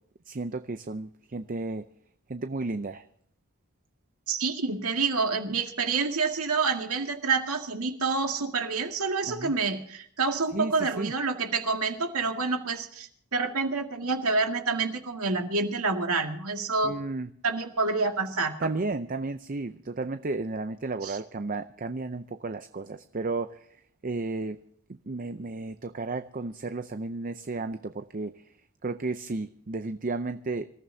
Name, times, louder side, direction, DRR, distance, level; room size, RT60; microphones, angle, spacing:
voice 1, 0.3-1.9 2.3-3.1 9.3-9.5 10.5-11.1 16.8-17.3 18.6-23.7 24.0-24.6 24.9-28.4 28.8-30.6, right 3 dB, 35° right, 10 dB, 0.6 m, -33 dB
voice 2, 4.3-17.0 17.4-18.7 21.0-21.2, right 4 dB, 75° right, 4 dB, 2.1 m, -28 dB
26.0 x 14.5 x 2.8 m, 0.65 s
head